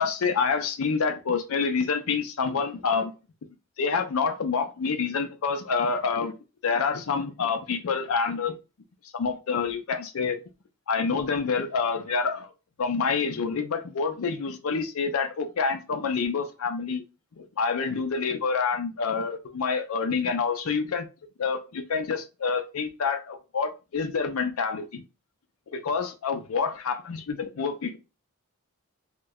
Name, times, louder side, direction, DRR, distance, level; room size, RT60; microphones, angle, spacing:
voice 1, 0.0-3.1 3.8-6.3 6.6-8.6 9.1-10.4 10.9-12.5 12.8-17.0 17.4-21.0 21.4-25.0 25.7-28.0, left 5 dB, 75° left, 0.5 m, -27 dB
2.9 x 2.1 x 3.5 m
head